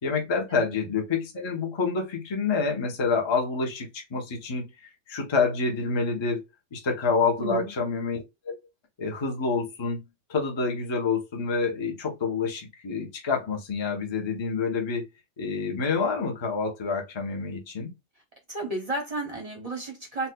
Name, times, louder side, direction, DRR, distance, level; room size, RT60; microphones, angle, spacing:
voice 1, 0.0-6.4 6.7-8.6 9.0-15.0 15.4-17.9, left 4 dB, 35° left, 0.4 m, -28 dB
voice 2, 7.4-7.7 18.5-20.3, right 2 dB, 40° right, 0.5 m, -32 dB
4.1 x 2.3 x 2.2 m
omnidirectional pair, 1.8 m